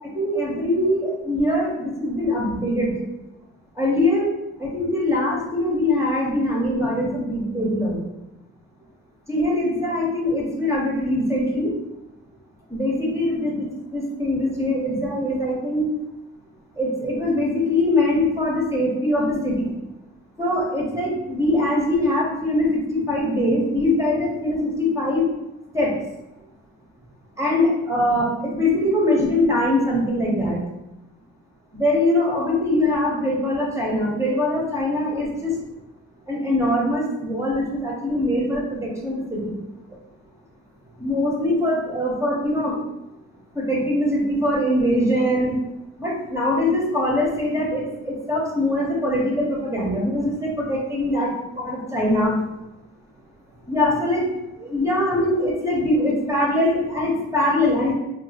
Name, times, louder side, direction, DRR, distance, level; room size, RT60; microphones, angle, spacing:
voice 1, 0.0-2.9 3.8-4.3 4.6-8.0 9.3-11.7 12.7-13.7 13.9-15.8 16.8-19.7 20.4-25.2 25.7-25.9 27.4-30.6 31.7-35.5 36.3-39.5 41.0-42.8 43.5-45.5 46.0-52.4 53.7-54.2 54.6-57.9, left 1 dB, 10° right, -3 dB, 0.7 m, -22 dB
3.0 x 2.4 x 2.7 m, 0.94 s
cardioid pair, 90°, 30 cm